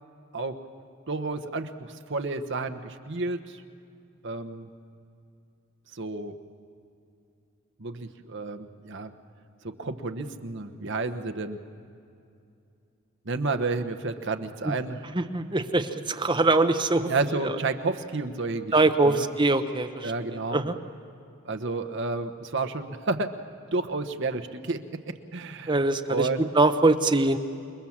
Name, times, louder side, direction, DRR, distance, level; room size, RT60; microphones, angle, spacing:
voice 1, 1.1-3.6 4.2-4.7 5.9-6.3 7.8-9.1 9.6-11.6 13.2-15.0 17.1-19.3 20.0-20.6 21.4-23.3 23.7-26.5, right 3 dB, 55° right, 6 dB, 1.1 m, -31 dB
voice 2, 15.1-17.1 18.7-20.7 25.7-26.3 26.6-27.4, right 2 dB, 20° right, 7 dB, 0.9 m, -23 dB
27.5 x 21.5 x 7.3 m, 2.6 s
head